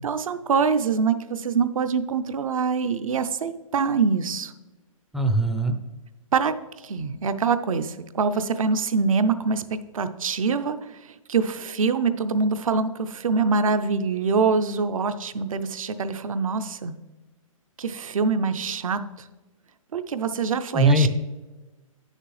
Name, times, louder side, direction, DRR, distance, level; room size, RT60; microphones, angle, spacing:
voice 1, 0.0-4.5 6.3-6.5 6.8-9.6 9.9-10.8 11.3-16.9 17.8-19.0 19.9-21.1, right 5 dB, 75° right, 11 dB, 0.6 m, -24 dB
voice 2, 5.1-5.8 20.7-21.1, right 1 dB, ahead, 5 dB, 0.3 m, -20 dB
9.3 x 6.5 x 3.2 m, 1.2 s
hypercardioid pair, 135°, 18 cm